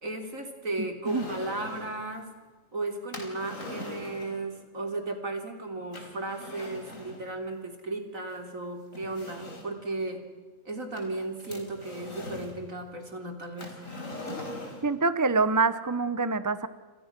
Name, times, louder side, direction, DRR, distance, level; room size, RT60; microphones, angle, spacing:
voice 1, 0.0-2.3 2.7-10.2 10.7-13.8, right 2 dB, 60° right, 5 dB, 3.8 m, -35 dB
sound 1, 1.0-2.0 3.1-4.4 5.9-7.3 8.3-8.4 8.9-9.8 11.0-12.6 13.6-14.9, left 1 dB, 60° left, 4.8 m, -41 dB
voice 2, 14.8-16.7, right 4 dB, 15° right, 13 dB, 0.7 m, -25 dB
30.0 x 27.5 x 6.1 m, 1.3 s
omnidirectional pair, 1.6 m